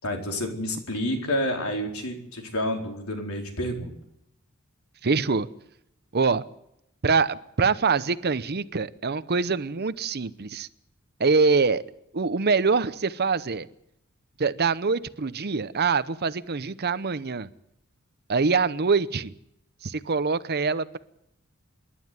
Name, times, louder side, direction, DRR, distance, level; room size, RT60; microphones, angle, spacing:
voice 1, 0.0-4.0, left 1 dB, 80° left, 2 dB, 4.4 m, -29 dB
voice 2, 5.0-5.5 6.1-6.4 7.0-10.7 11.2-11.8 12.1-13.7 14.4-17.5 18.3-19.3 19.8-21.0, right 4 dB, 50° right, 15 dB, 0.8 m, -24 dB
26.5 x 11.5 x 9.6 m, 0.80 s
head